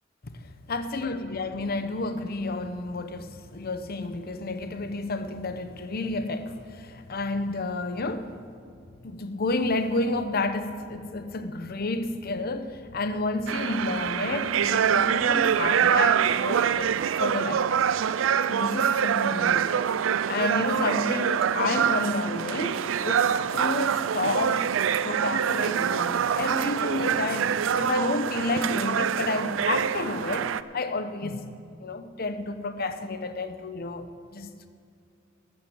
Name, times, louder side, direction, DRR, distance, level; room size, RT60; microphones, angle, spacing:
voice 1, 0.2-8.4 9.0-17.9 18.5-19.9 20.3-24.6 25.0-31.5 31.8-34.7, left 2 dB, 55° left, 0.8 m, -30 dB
sound 1, 13.5-30.6, right 8 dB, 85° right, 0.4 m, -25 dB
13.0 x 7.6 x 8.0 m
head